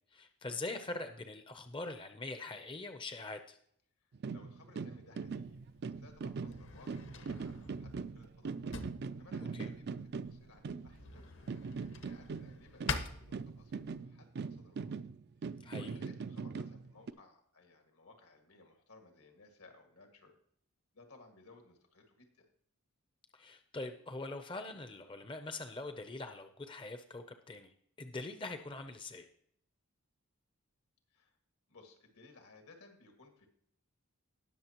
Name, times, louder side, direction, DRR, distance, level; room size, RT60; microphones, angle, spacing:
voice 1, 0.1-3.6 9.5-9.7 15.6-15.9 23.3-29.3, left 2 dB, 20° left, 7 dB, 0.5 m, -43 dB
sound 1, 4.1-11.2 11.5-17.1, right 5 dB, 45° right, 0.3 m, -41 dB
voice 2, 4.3-5.6 5.9-8.6 9.2-11.4 11.9-15.0 15.7-20.3 20.9-22.5 31.1-31.3 31.7-33.5, left 3 dB, 85° left, 4 dB, 2.0 m, -60 dB
Drawer open or close, 5.2-14.0, left 4 dB, 55° left, 0.9 m, -46 dB
19.0 x 6.4 x 2.9 m, 0.67 s
head